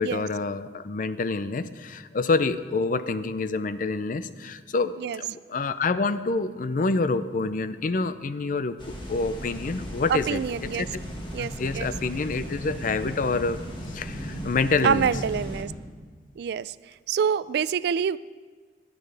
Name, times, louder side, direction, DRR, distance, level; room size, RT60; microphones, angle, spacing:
voice 1, 0.0-10.9 11.4-13.6 13.9-15.1, left 3 dB, 50° left, 13 dB, 0.5 m, -27 dB
sound 1, 8.8-15.6, equal, 30° left, 1.6 m, -36 dB
voice 2, 10.1-10.9 11.3-11.9 14.8-15.7 16.4-16.8 17.1-18.2, right 7 dB, 65° right, 18 dB, 0.3 m, -26 dB
17.5 x 11.0 x 3.4 m, 1.5 s
head